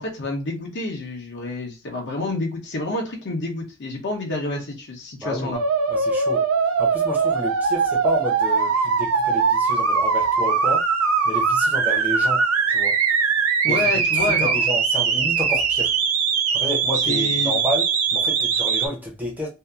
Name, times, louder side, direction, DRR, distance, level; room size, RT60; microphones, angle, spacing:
voice 1, 0.0-5.6 13.6-14.6 17.1-17.6, left 2 dB, 55° left, 0.8 m, -28 dB
voice 2, 5.2-5.5 5.9-6.4 6.8-10.8 11.3-12.4 12.7-12.9 13.7-15.9 16.5-19.5, left 1 dB, 10° right, 0.7 m, -30 dB
sound 1, 5.5-18.9, right 5 dB, 85° right, 0.5 m, -21 dB
2.7 x 2.5 x 2.3 m
head